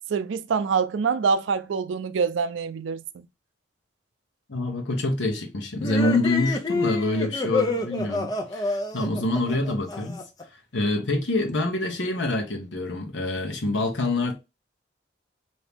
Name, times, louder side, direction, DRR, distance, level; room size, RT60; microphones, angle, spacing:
voice 1, 0.1-3.0, right 5 dB, 85° right, 0.4 m, -25 dB
voice 2, 4.5-10.2 10.7-14.3, left 2 dB, 80° left, 0.9 m, -26 dB
sound 1, 5.8-10.4, left 2 dB, 20° left, 0.4 m, -28 dB
3.0 x 2.7 x 3.4 m
head